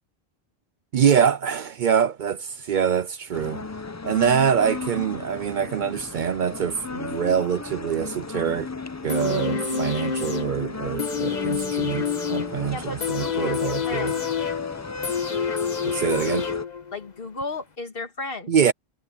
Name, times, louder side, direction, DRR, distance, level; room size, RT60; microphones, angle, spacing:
voice 1, 0.9-3.7 4.0-8.7 9.0-14.1 15.8-16.4 18.5-18.7, right 8 dB, 60° right, 0.6 m, -24 dB
sound 1, 3.3-16.6, left 4 dB, 20° left, 0.5 m, -35 dB
sound 2, 9.1-17.1 17.4-17.5, left 6 dB, 45° left, 1.3 m, -28 dB
voice 2, 12.7-14.2 16.9-18.5, left 2 dB, 65° left, 2.0 m, -34 dB
omnidirectional pair, 1.0 m